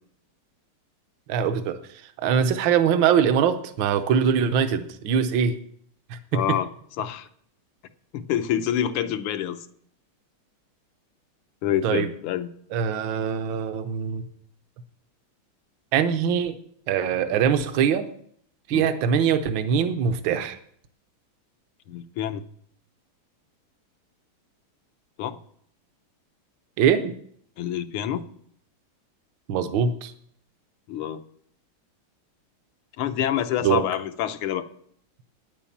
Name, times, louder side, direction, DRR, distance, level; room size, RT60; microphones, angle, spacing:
voice 1, 1.3-1.8 2.2-5.6 6.1-6.4 11.8-12.1 12.7-14.2 15.9-16.6 16.9-18.1 18.7-20.6 26.8-27.1 29.5-30.1 33.6-33.8, right 7 dB, 70° right, 9 dB, 1.5 m, -22 dB
voice 2, 6.3-6.7 7.0-7.3 8.1-9.6 11.6-12.5 18.7-18.9 21.9-22.4 25.2-25.4 27.6-28.2 30.9-31.2 33.0-34.7, left 10 dB, 85° left, 10 dB, 1.7 m, -27 dB
9.9 x 8.6 x 7.2 m, 0.64 s
omnidirectional pair, 2.3 m